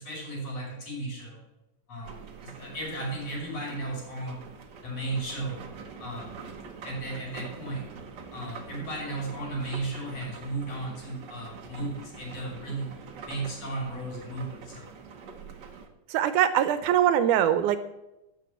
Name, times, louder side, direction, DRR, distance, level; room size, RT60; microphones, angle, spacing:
voice 1, 0.0-1.4 1.9-4.4 4.8-5.6 6.0-6.4 6.8-7.8 8.3-12.9 13.3-14.9, right 2 dB, 50° left, -2 dB, 6.5 m, -35 dB
sound 1, 2.0-15.9, right 5 dB, 65° right, 1.1 m, -45 dB
voice 2, 16.1-17.8, right 10 dB, 80° right, 11 dB, 2.1 m, -22 dB
13.0 x 6.6 x 8.1 m, 0.95 s
omnidirectional pair, 3.7 m